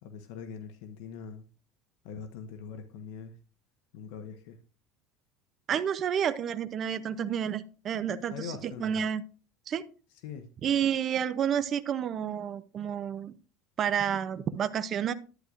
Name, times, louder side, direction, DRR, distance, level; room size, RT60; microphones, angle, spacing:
voice 1, 0.0-1.4 2.0-3.3 3.9-4.6 8.3-9.0 10.2-10.5, left 6 dB, 65° left, 7 dB, 1.1 m, -42 dB
voice 2, 5.7-9.2 9.7-9.8 10.6-13.3 13.8-15.1, right 8 dB, 25° right, 11 dB, 0.6 m, -30 dB
11.5 x 9.4 x 2.5 m, 0.35 s
cardioid pair, 180°, 0 cm